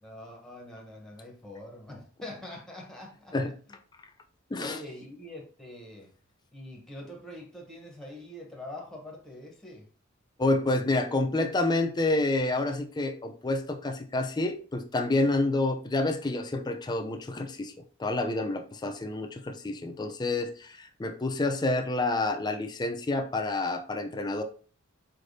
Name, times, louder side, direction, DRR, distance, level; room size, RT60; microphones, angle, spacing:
voice 1, 0.0-3.3 4.6-6.1 6.5-9.9, left 1 dB, ahead, 0 dB, 0.9 m, -44 dB
voice 2, 4.5-4.8 10.4-17.7 18.0-24.4, left 2 dB, 20° left, 6 dB, 0.4 m, -28 dB
4.2 x 3.3 x 2.7 m, 0.41 s
head